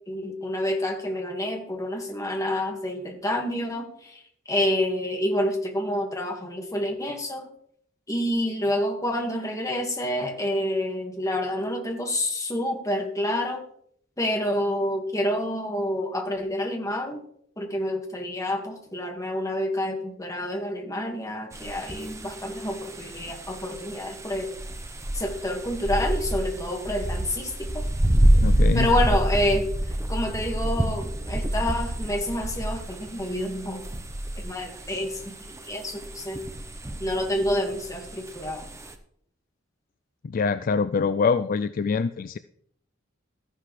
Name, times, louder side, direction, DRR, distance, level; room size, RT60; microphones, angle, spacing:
voice 1, 0.1-4.2 4.5-7.5 8.1-13.6 14.2-17.2 17.6-24.5 25.1-27.8 28.7-29.7 30.1-33.8 34.4-36.4 37.0-38.7, left 1 dB, 15° left, 2 dB, 1.8 m, -28 dB
sound 1, 21.5-38.9, right 1 dB, 15° right, 0.9 m, -28 dB
voice 2, 28.4-28.9 40.2-42.4, left 5 dB, 45° left, 13 dB, 0.3 m, -24 dB
13.5 x 10.5 x 3.3 m, 0.67 s
head